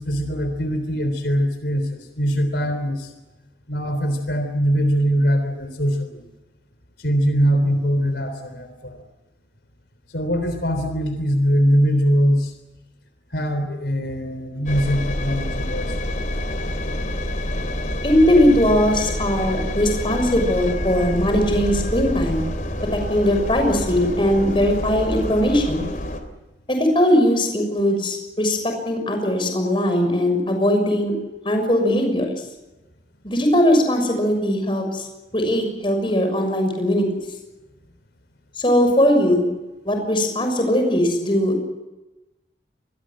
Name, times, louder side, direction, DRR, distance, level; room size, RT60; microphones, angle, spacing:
voice 1, 0.0-3.1 3.7-6.2 7.0-9.0 10.1-12.5 13.3-16.2, equal, 75° left, 7 dB, 3.5 m, -22 dB
Engine, 14.7-26.2, left 1 dB, 45° left, 3.3 m, -27 dB
voice 2, 18.0-22.4 22.9-25.8 26.7-31.1 31.4-32.3 33.2-35.1 35.3-37.1 38.6-39.5 39.8-41.6, equal, 30° left, 5 dB, 6.6 m, -19 dB
27.5 x 22.0 x 7.6 m, 1.0 s
head